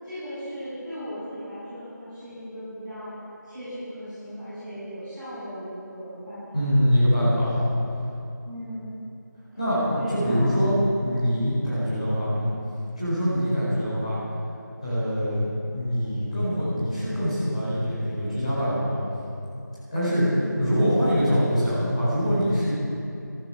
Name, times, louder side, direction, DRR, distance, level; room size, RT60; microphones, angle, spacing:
voice 1, 0.0-3.1 3.4-6.6 8.4-8.9 9.9-10.5 11.6-11.9 14.8-14.9 20.0-20.4, equal, ahead, -24 dB, 4.6 m, -37 dB
voice 2, 6.5-7.7 9.6-10.7 11.0-12.5 13.0-14.2 14.8-19.0 19.9-20.2 20.6-22.7, equal, 20° left, -12 dB, 4.6 m, -24 dB
14.5 x 14.0 x 6.3 m, 2.7 s
figure-of-eight pair, 175°, 10 cm